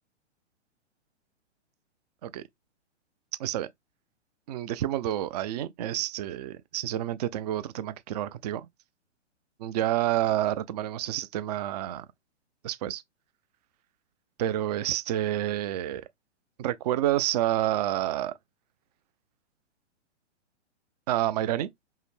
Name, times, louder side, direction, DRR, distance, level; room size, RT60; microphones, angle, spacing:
voice 1, 4.5-8.7 9.6-12.1 12.6-13.0 14.4-16.0 16.6-18.3 21.1-21.7, right 13 dB, 35° right, 0.4 m, -29 dB
5.5 x 2.0 x 3.2 m
hypercardioid pair, 120°, 35 cm